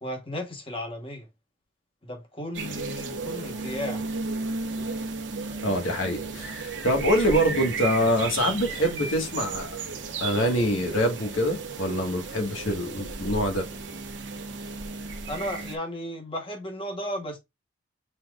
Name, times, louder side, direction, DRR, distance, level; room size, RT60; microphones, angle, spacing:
voice 1, 0.0-1.3 2.0-4.1 15.3-17.4, left 1 dB, 25° left, 1.2 m, -34 dB
sound 1, 2.5-15.8, right 4 dB, 65° right, 1.0 m, -34 dB
voice 2, 5.6-9.8 10.2-13.7, equal, 85° left, 1.5 m, -25 dB
5.8 x 3.8 x 2.3 m
head